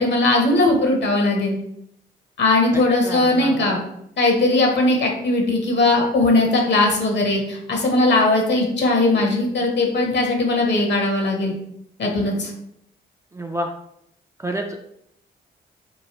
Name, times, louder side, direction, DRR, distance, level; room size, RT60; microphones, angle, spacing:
voice 1, 0.0-1.5 2.4-3.8 4.2-11.5 12.0-12.5, left 2 dB, 55° left, 1 dB, 0.9 m, -19 dB
voice 2, 2.7-3.8 13.3-13.7 14.4-14.8, right 1 dB, 15° right, 2 dB, 0.3 m, -29 dB
3.0 x 2.2 x 2.9 m, 0.75 s
supercardioid pair, 50°, 21 cm